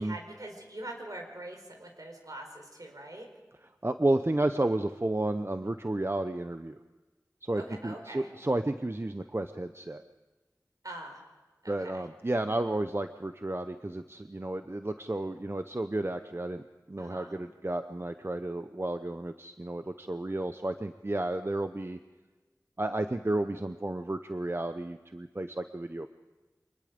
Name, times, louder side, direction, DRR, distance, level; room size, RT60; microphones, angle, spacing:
voice 1, 0.0-3.3 7.5-8.3 10.8-11.2 11.6-12.0 17.0-17.3, right 1 dB, 65° right, 2 dB, 4.3 m, -43 dB
voice 2, 3.8-6.8 7.4-10.0 11.7-22.0 22.8-26.1, right 1 dB, 35° right, 9 dB, 0.7 m, -32 dB
25.0 x 20.5 x 5.2 m, 1.2 s
wide cardioid pair, 40°, 7 cm